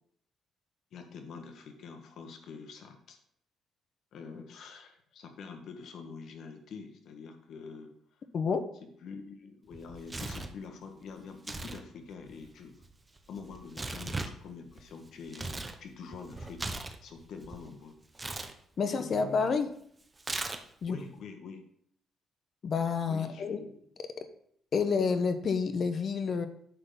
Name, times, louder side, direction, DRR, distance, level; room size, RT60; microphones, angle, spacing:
voice 1, 0.9-3.2 4.1-7.9 8.8-12.8 13.3-15.5 15.8-16.7 17.0-18.0 18.8-19.6 20.9-21.6 23.1-23.8, left 5 dB, 70° left, 5 dB, 1.7 m, -46 dB
voice 2, 8.3-8.6 18.8-19.7 20.8-21.0 22.6-23.6 24.7-26.5, left 5 dB, 50° left, 9 dB, 1.0 m, -29 dB
Tearing, 9.7-10.6 11.3-11.8 12.1-15.8 16.1-17.6 18.1-18.5 20.2-20.9, right 2 dB, 20° right, 1.0 m, -38 dB
9.6 x 4.0 x 7.0 m, 0.66 s
cardioid pair, 100°, 0 cm